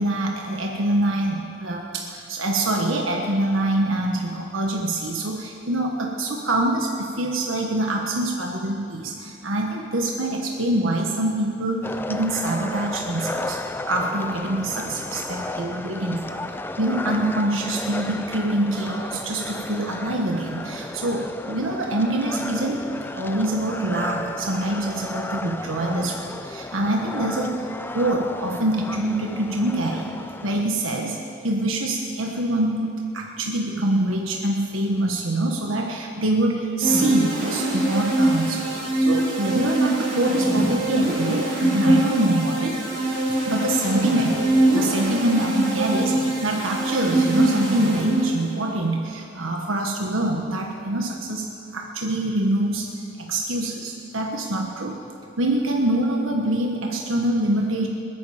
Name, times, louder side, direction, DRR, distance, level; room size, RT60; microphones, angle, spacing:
voice 1, 0.0-13.6 13.9-16.4 16.8-22.9 23.1-30.2 30.4-31.2 31.4-38.7 39.0-42.8 43.5-51.5 51.7-52.9 53.2-55.0 55.4-57.9, right 1 dB, 85° right, 0 dB, 1.4 m, -25 dB
sound 1, 11.8-30.6, left 2 dB, 10° left, 0.4 m, -33 dB
sound 2, 36.8-48.6, right 1 dB, 60° right, 4.8 m, -23 dB
28.0 x 9.4 x 5.0 m, 2.5 s
head